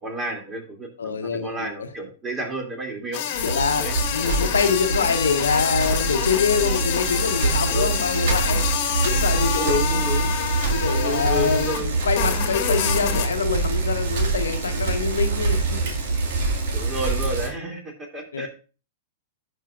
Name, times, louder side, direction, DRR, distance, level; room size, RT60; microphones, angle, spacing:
voice 1, 0.0-3.2 3.7-3.9 7.7-7.9 9.5-10.3 10.9-11.9 16.7-18.5, equal, 20° right, 3 dB, 2.7 m, -30 dB
voice 2, 1.0-1.9 3.4-3.9 4.1-8.7 9.0-10.0 10.4-15.9 18.3-18.5, left 6 dB, 80° left, 7 dB, 0.9 m, -25 dB
sound 1, 3.1-11.8 12.1-13.3, left 10 dB, 50° left, 1.3 m, -27 dB
Bicycle, 3.3-17.5, right 3 dB, 60° right, 2.0 m, -25 dB
15.5 x 5.4 x 2.5 m, 0.35 s
hypercardioid pair, 105°, 0 cm